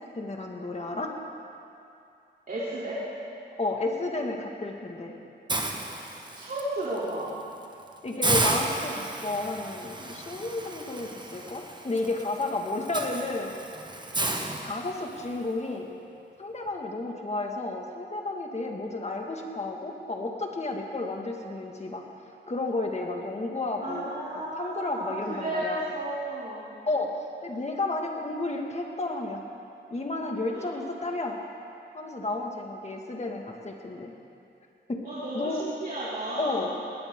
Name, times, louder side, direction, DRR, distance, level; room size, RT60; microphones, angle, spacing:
voice 1, 0.2-1.2 3.6-5.1 8.0-13.6 14.6-15.9 16.4-22.0 22.5-24.1 24.6-25.8 26.9-29.4 29.9-31.4 31.9-34.1 34.9-35.0 35.3-35.6 36.4-36.7, left 2 dB, 35° left, 1 dB, 2.1 m, -32 dB
voice 2, 2.5-3.0 6.0-7.4 23.8-26.7 30.5-30.8 35.0-36.8, right 1 dB, 50° right, -10 dB, 3.6 m, -34 dB
Hiss, 5.5-6.6 7.1-7.3 7.6-7.7 8.2-15.3, right 2 dB, 25° right, 1.4 m, -32 dB
19.0 x 18.5 x 3.9 m, 2.6 s
wide cardioid pair, 85°, 19 cm